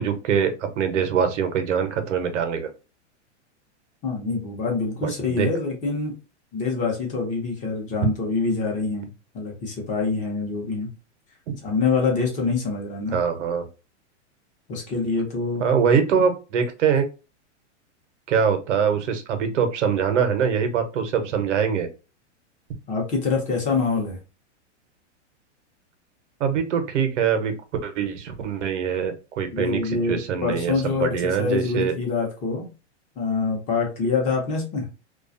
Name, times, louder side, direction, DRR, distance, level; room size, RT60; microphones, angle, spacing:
voice 1, 0.0-2.7 5.0-5.5 11.5-11.6 13.1-13.6 15.6-17.1 18.3-21.9 26.4-27.5 27.8-32.0, right 7 dB, 80° right, 7 dB, 0.8 m, -23 dB
voice 2, 4.0-6.1 6.5-10.9 11.6-13.2 14.7-15.6 22.9-24.2 29.5-32.7 33.2-34.9, left 4 dB, 20° left, 0 dB, 0.7 m, -25 dB
2.4 x 2.3 x 2.5 m, 0.30 s
supercardioid pair, 150°, 36 cm